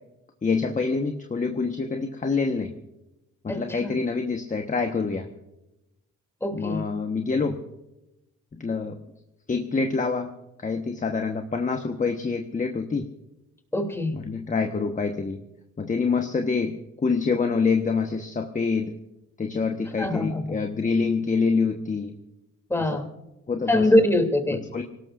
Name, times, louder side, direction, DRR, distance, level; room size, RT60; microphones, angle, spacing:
voice 1, 0.4-2.7 3.4-5.3 6.5-7.6 8.5-9.0 9.5-10.3 10.6-13.1 14.1-15.4 15.8-18.9 19.4-22.2 22.9-23.0 23.5-23.8 24.7-24.8, left 4 dB, 25° left, 4 dB, 1.2 m, -26 dB
voice 2, 3.5-3.9 6.4-6.8 13.7-14.2 20.0-20.6 22.7-23.1 23.7-24.6, left 1 dB, 10° left, 4 dB, 3.0 m, -23 dB
26.5 x 18.0 x 2.6 m, 0.93 s
cardioid pair, 90°, 30 cm